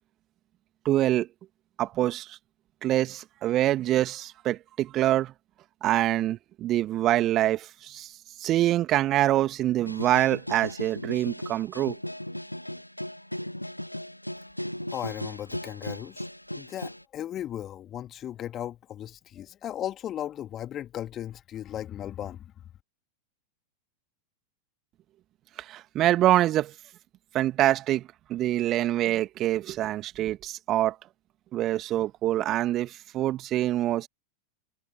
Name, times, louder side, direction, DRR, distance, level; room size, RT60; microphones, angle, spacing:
voice 1, 0.8-1.3 1.8-2.4 2.8-5.3 5.8-8.1 8.4-12.0 25.6-26.7 27.3-31.0 31.5-34.1, right 13 dB, 35° right, 2.2 m, -25 dB
sound 1, 9.9-17.0, left 1 dB, 90° left, 1.5 m, -37 dB
voice 2, 14.9-16.3 16.5-22.4, left 11 dB, 30° left, 2.5 m, -36 dB
figure-of-eight pair, 90°, 0 cm